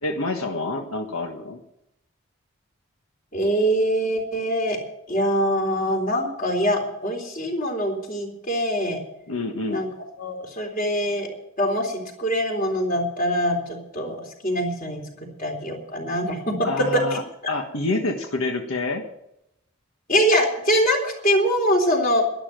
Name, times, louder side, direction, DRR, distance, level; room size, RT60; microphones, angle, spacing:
voice 1, 0.0-1.6 9.3-9.8 16.6-17.2 17.5-19.0, left 2 dB, 90° left, 4 dB, 1.5 m, -27 dB
voice 2, 3.3-4.8 5.1-9.0 9.7-9.9 10.2-11.3 11.6-14.2 14.4-15.0 15.4-16.6 20.1-22.2, equal, 40° left, 1 dB, 3.7 m, -23 dB
12.0 x 11.5 x 7.6 m, 0.80 s
head